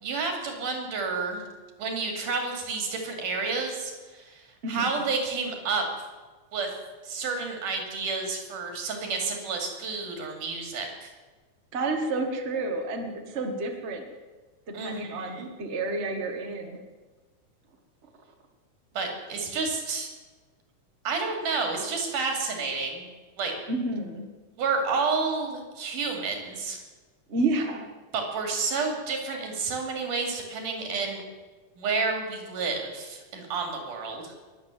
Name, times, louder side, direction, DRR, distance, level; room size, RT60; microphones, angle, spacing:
voice 1, 0.0-1.4 1.8-5.8 6.5-6.7 7.0-11.1 14.7-15.5 18.9-20.1 21.0-23.1 23.4-23.5 24.6-26.8 28.1-31.2 31.8-34.3, right 4 dB, 90° right, 3 dB, 4.2 m, -30 dB
voice 2, 11.7-14.1 14.7-16.8 23.7-24.3 27.3-27.9, right 2 dB, 30° right, 4 dB, 1.4 m, -30 dB
21.5 x 8.1 x 7.5 m, 1.3 s
omnidirectional pair, 3.6 m